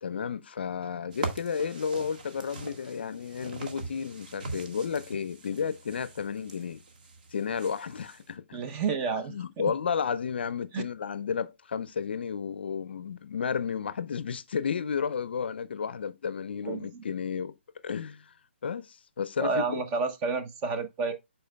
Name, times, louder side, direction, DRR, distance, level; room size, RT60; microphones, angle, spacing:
voice 1, 0.0-6.8 7.3-8.6 9.3-17.5 17.8-18.3 18.6-19.8, left 6 dB, 60° left, 0.5 m, -32 dB
sound 1, 1.1-8.3, right 3 dB, 45° right, 1.5 m, -41 dB
voice 2, 8.5-9.3 10.7-10.8 16.6-17.0 19.4-21.1, right 4 dB, 20° right, 0.7 m, -30 dB
11.5 x 4.5 x 2.2 m
hypercardioid pair, 160°, 6 cm